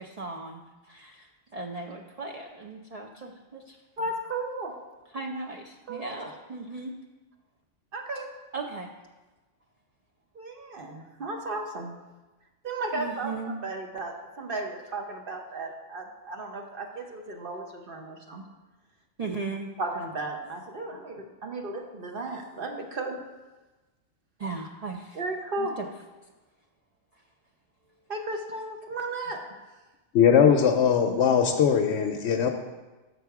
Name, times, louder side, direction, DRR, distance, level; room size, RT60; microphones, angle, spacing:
voice 1, 0.0-3.8 5.1-6.9 8.5-8.9 12.9-13.6 19.2-19.7 24.4-25.2 25.6-25.9, right 3 dB, 70° right, 0 dB, 0.3 m, -37 dB
voice 2, 4.0-4.7 5.9-6.3 7.9-8.3 10.3-11.9 12.6-13.3 13.6-18.4 19.8-23.2 25.1-25.8 28.1-29.4, right 2 dB, 50° right, 2 dB, 0.9 m, -34 dB
voice 3, 30.1-32.5, left 7 dB, 70° left, 3 dB, 0.8 m, -20 dB
6.7 x 6.0 x 4.7 m, 1.2 s
omnidirectional pair, 1.3 m